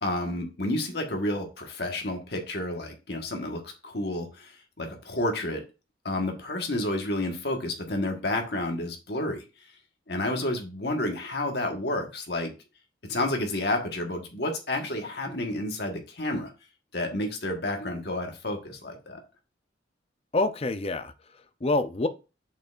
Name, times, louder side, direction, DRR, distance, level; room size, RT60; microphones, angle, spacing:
voice 1, 0.0-4.5 4.8-5.6 6.0-9.4 10.1-12.5 13.1-16.5 16.9-19.2, left 1 dB, 60° left, 1.5 m, -30 dB
voice 2, 20.3-22.1, left 2 dB, 30° left, 0.5 m, -27 dB
7.8 x 6.7 x 2.5 m
head